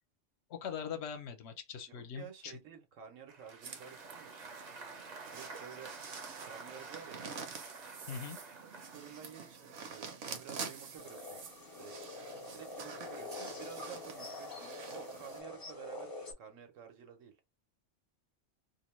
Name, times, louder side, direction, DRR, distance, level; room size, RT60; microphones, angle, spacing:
voice 1, 0.5-2.5 8.1-8.4, left 7 dB, 70° left, 0.9 m, -41 dB
voice 2, 1.9-4.5 5.3-5.9 6.4-7.3 8.9-11.4 11.8-12.0 12.5-17.3, right 8 dB, 90° right, 1.2 m, -51 dB
Applause, 3.3-9.3, right 4 dB, 45° right, 0.6 m, -50 dB
sound 1, 3.6-15.4, right 5 dB, 65° right, 0.9 m, -47 dB
sound 2, 11.0-16.3, left 2 dB, 30° left, 0.4 m, -45 dB
2.6 x 2.1 x 3.0 m
omnidirectional pair, 1.3 m